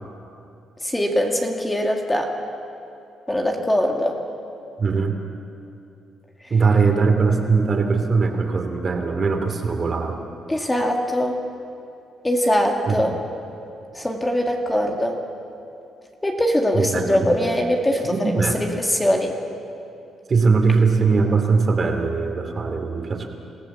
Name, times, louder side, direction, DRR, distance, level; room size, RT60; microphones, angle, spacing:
voice 1, 0.8-2.3 3.3-4.2 10.5-11.4 12.2-13.2 13.9-15.2 16.2-19.3, equal, 15° left, 2 dB, 2.2 m, -22 dB
voice 2, 4.8-5.1 6.5-10.2 12.9-13.0 16.7-17.5 18.0-18.6 20.3-23.3, right 4 dB, 40° right, 4 dB, 2.8 m, -20 dB
27.0 x 15.5 x 7.4 m, 2.7 s
cardioid pair, 90°, 0 cm